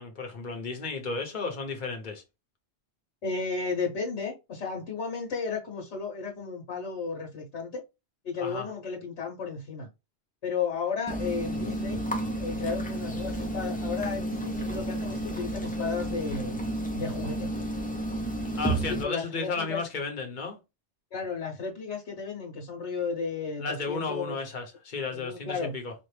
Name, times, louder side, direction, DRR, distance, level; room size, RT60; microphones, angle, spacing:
voice 1, 0.0-2.2 8.4-8.7 18.5-20.6 23.6-25.9, left 4 dB, 45° left, 1.1 m, -33 dB
voice 2, 3.2-7.8 8.2-9.9 10.4-12.0 12.4-16.6 16.9-17.5 18.9-19.8 21.1-24.4 25.1-25.7, left 5 dB, 80° left, 1.4 m, -33 dB
sound 1, 11.1-19.0, right 1 dB, 10° left, 0.6 m, -31 dB
4.3 x 2.5 x 3.2 m
omnidirectional pair, 1.1 m